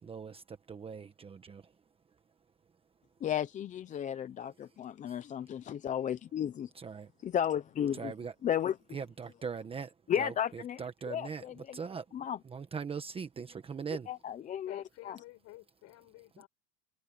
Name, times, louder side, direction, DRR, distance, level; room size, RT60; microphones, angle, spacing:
voice 1, 0.0-1.7 4.7-4.8 5.1-5.2 6.7-7.1 7.9-8.3 8.9-14.1 16.4-16.5, right 6 dB, 15° right, 1.2 m, -41 dB
voice 2, 3.2-6.7 7.2-8.1 8.4-8.7 10.1-10.8 11.1-11.8 12.1-12.4 14.1-15.2, left 9 dB, 20° left, 0.7 m, -34 dB
voice 3, 14.7-16.5, left 18 dB, 45° left, 7.2 m, -51 dB
supercardioid pair, 150°, 37 cm